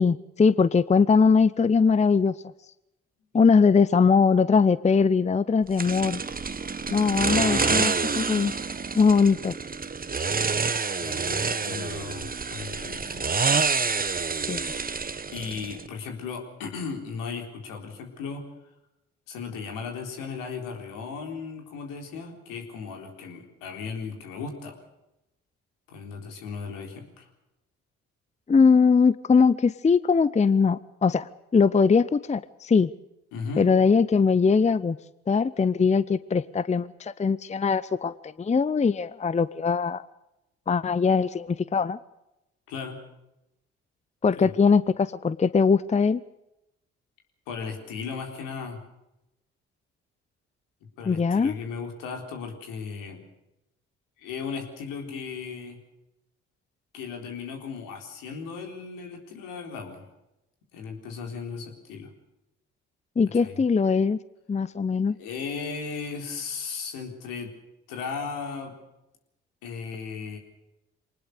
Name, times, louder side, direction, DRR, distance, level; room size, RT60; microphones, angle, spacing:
voice 1, 0.0-2.3 3.3-6.2 6.9-8.5 8.9-9.5 14.5-14.7 28.5-32.9 33.6-35.0 35.3-40.0 40.7-42.0 44.2-46.2 51.1-51.6 63.2-64.2 64.5-65.2, left 5 dB, 20° left, 18 dB, 0.7 m, -21 dB
sound 1, 5.8-15.9, right 5 dB, 25° right, 1.3 m, -28 dB
voice 2, 7.3-8.1 11.0-13.3 15.3-18.4 19.3-24.8 25.9-27.3 33.3-33.7 42.7-43.0 44.3-44.5 47.5-48.8 51.0-53.2 54.2-55.8 56.9-60.1 60.7-62.1 63.3-63.6 65.1-67.5 67.9-68.7 69.6-70.4, left 5 dB, 75° left, 3 dB, 4.0 m, -36 dB
24.5 x 19.5 x 6.7 m, 0.90 s
hypercardioid pair, 45°, 33 cm